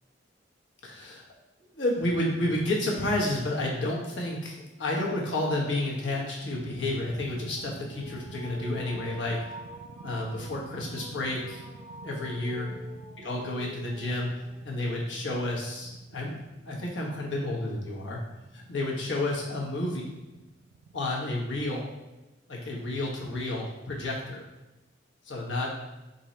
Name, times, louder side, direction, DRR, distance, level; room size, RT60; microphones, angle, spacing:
voice 1, 0.8-1.2 1.7-9.4 10.0-11.6 12.0-12.7 13.2-14.3 14.6-16.4 16.7-18.2 18.5-20.1 20.9-21.9 22.5-24.5 25.2-25.7, left 1 dB, 75° left, -3 dB, 1.1 m, -30 dB
sound 1, 4.6-14.9, left 2 dB, 5° right, 0.6 m, -48 dB
sound 2, 6.4-21.3, right 5 dB, 75° right, 0.3 m, -49 dB
3.7 x 2.8 x 4.2 m, 1.0 s
head